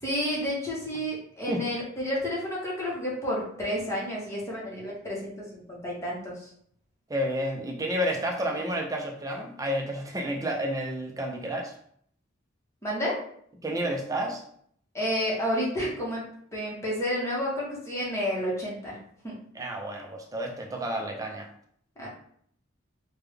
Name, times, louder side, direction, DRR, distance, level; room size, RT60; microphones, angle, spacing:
voice 1, 0.0-6.3 12.8-13.2 14.9-16.2 16.5-19.0 19.2-19.3 22.0-22.1, equal, 15° left, -5 dB, 1.0 m, -30 dB
voice 2, 7.1-11.7 13.6-14.5 19.5-21.5, equal, 15° right, 1 dB, 0.5 m, -30 dB
3.4 x 2.2 x 3.3 m, 0.64 s
head